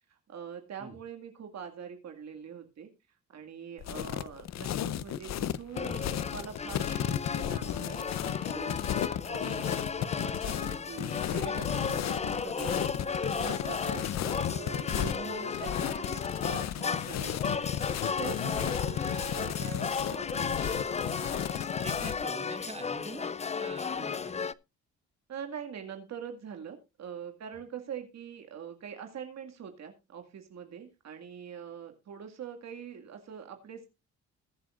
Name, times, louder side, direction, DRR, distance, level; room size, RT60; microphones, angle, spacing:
voice 1, 0.1-2.9 3.3-9.0 9.2-12.8 13.2-17.7 18.2-21.4 25.3-33.9, right 7 dB, 60° right, 5 dB, 2.2 m, -44 dB
sound 1, 3.8-22.2, left 11 dB, 60° left, 0.7 m, -34 dB
sound 2, 5.7-24.5, left 5 dB, 20° left, 0.5 m, -35 dB
voice 2, 12.5-13.1 13.7-13.8 15.2-15.3 21.7-24.4, right 3 dB, 20° right, 6 dB, 3.0 m, -45 dB
21.5 x 7.6 x 2.5 m, 0.26 s
cardioid pair, 90°, 30 cm